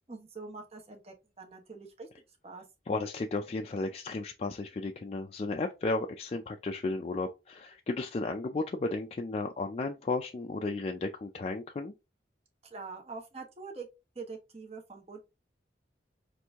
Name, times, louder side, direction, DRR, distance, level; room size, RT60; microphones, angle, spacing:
voice 1, 0.1-2.1 2.4-2.6 12.6-13.9 14.1-15.2, right 4 dB, 35° right, 1.0 m, -44 dB
voice 2, 2.9-11.9, left 3 dB, 35° left, 0.3 m, -34 dB
4.5 x 2.6 x 3.4 m
head